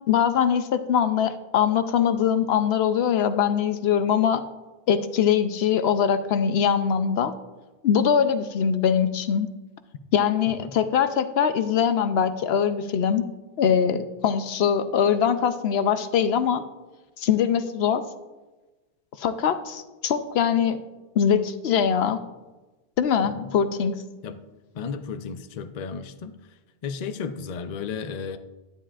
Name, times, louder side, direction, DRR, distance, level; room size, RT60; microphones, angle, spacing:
voice 1, 0.0-4.4 4.9-7.3 7.8-9.5 10.1-13.2 13.6-16.7 17.2-18.0 19.2-20.8 21.2-22.2 23.0-23.9, left 8 dB, 80° left, 10 dB, 0.9 m, -22 dB
voice 2, 24.7-26.3 26.8-28.4, left 6 dB, 50° left, 9 dB, 0.6 m, -33 dB
11.0 x 9.9 x 2.4 m, 1.1 s
omnidirectional pair, 1.1 m